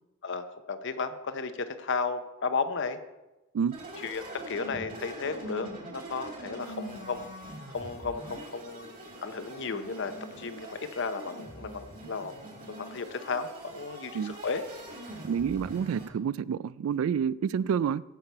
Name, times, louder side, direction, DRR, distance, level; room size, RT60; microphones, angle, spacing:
voice 1, 0.2-3.0 4.0-7.2 7.7-12.3 12.7-14.6, left 4 dB, 60° left, 10 dB, 0.7 m, -34 dB
sound 1, 3.7-16.1, right 1 dB, 40° right, 2.8 m, -44 dB
voice 2, 15.2-18.0, right 7 dB, 80° right, 20 dB, 0.3 m, -28 dB
16.0 x 5.8 x 4.5 m, 1.1 s
head